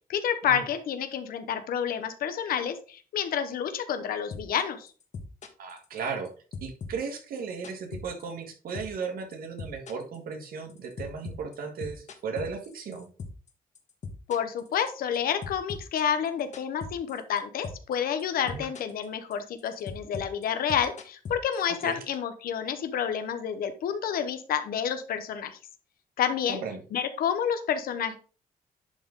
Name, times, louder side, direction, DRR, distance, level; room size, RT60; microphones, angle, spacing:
voice 1, 0.1-4.9 14.3-25.6 26.2-26.6 26.9-28.1, left 8 dB, 80° left, 9 dB, 0.9 m, -29 dB
sound 1, 4.3-4.6 4.9-6.3 6.5-8.5 8.8-9.1 9.3-13.5 13.8-15.2 15.4-17.4 17.6-17.9 18.2-19.1 19.3-21.9, left 4 dB, 50° left, 1.4 m, -40 dB
voice 2, 5.6-6.3 6.6-13.1 18.4-18.7 21.7-22.0 26.5-26.8, right 5 dB, 75° right, 4 dB, 1.9 m, -36 dB
11.0 x 4.0 x 3.7 m, 0.37 s
cardioid pair, 100°, 15 cm